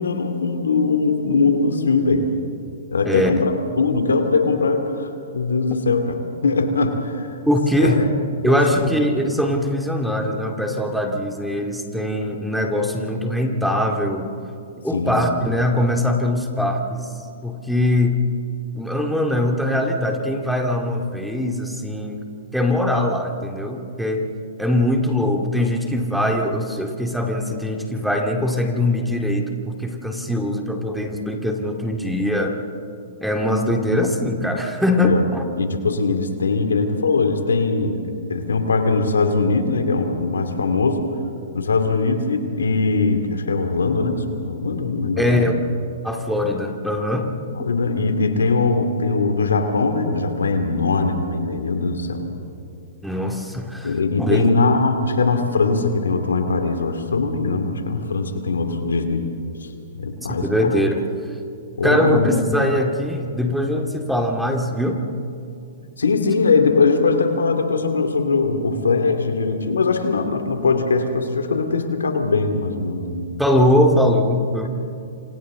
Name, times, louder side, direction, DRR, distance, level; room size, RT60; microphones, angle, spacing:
voice 1, 0.0-2.3 2.9-6.1 6.4-7.3 7.8-8.0 8.4-8.9 14.9-15.1 35.0-35.3 35.6-38.0 38.3-41.1 41.5-45.4 47.6-52.3 53.8-59.3 59.6-60.7 61.8-62.3 66.0-73.2, left 4 dB, 90° left, 5 dB, 2.5 m, -21 dB
voice 2, 3.0-3.5 7.5-8.0 8.4-14.3 14.8-17.1 17.4-18.2 18.7-22.2 22.5-24.3 24.6-32.5 33.2-35.4 45.2-45.5 46.0-47.3 53.0-54.5 60.4-61.0 61.8-65.0 73.4-74.7, left 1 dB, ahead, 2 dB, 2.2 m, -21 dB
28.0 x 26.5 x 3.9 m, 2.5 s
hypercardioid pair, 130°, 0 cm